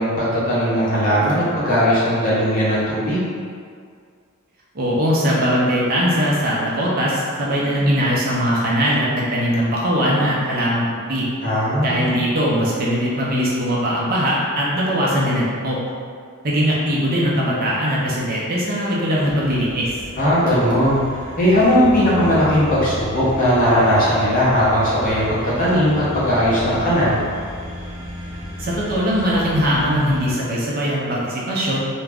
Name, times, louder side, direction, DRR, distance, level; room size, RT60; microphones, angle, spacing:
voice 1, 0.0-3.2 11.4-12.1 20.2-27.2, equal, 40° left, -9 dB, 0.8 m, -18 dB
voice 2, 4.7-11.3 11.8-15.8 16.4-19.9 28.6-31.8, equal, 45° right, -5 dB, 0.5 m, -20 dB
sound 1, 19.1-30.3, left 1 dB, 80° right, 0.8 m, -34 dB
2.3 x 2.1 x 3.4 m, 2.1 s
head